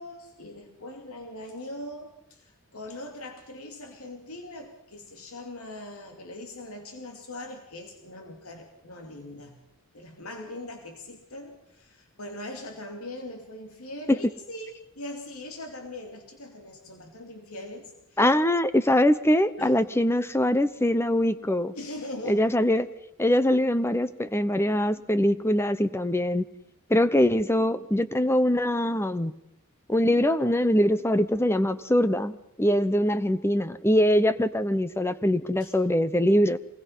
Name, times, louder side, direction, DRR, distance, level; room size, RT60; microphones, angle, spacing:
voice 1, 0.0-9.6 9.9-18.2 19.6-19.7 21.7-22.5 35.6-35.7, left 1 dB, 85° left, 3 dB, 2.6 m, -41 dB
voice 2, 18.2-21.7 22.3-22.9 23.2-26.5 26.9-29.3 29.9-36.6, left 1 dB, 10° left, 13 dB, 0.8 m, -23 dB
26.5 x 20.5 x 5.6 m, 0.79 s
head